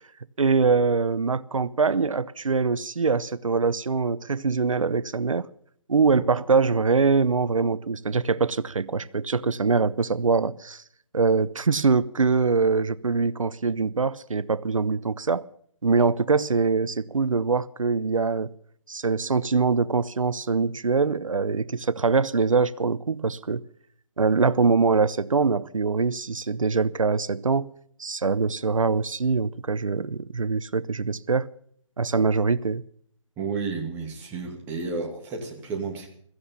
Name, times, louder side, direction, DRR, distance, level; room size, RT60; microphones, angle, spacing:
voice 1, 0.4-5.5 5.9-10.8 11.1-15.5 15.8-18.5 18.9-23.6 24.2-27.7 28.0-31.5 32.0-32.8, right 4 dB, 80° right, 0.9 m, -23 dB
voice 2, 33.4-36.1, right 4 dB, 15° right, 2.4 m, -32 dB
16.0 x 14.5 x 5.6 m
figure-of-eight pair, 155°, 17 cm